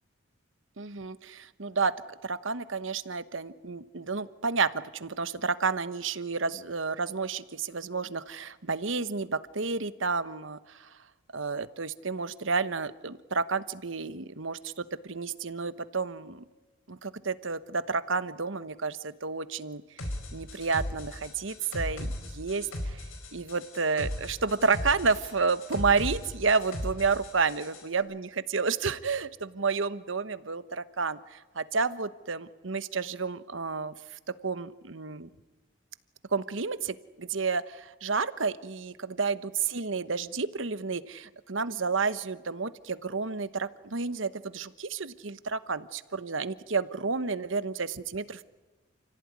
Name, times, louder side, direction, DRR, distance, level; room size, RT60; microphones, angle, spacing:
voice 1, 0.8-1.9 2.2-10.9 11.3-16.4 16.9-19.8 20.3-23.0 23.3-33.9 34.4-35.3 36.3-48.4, right 4 dB, 75° right, 14 dB, 1.1 m, -30 dB
sound 1, 20.0-27.9, left 1 dB, 85° left, 5.0 m, -37 dB
29.5 x 16.5 x 9.6 m, 1.2 s
head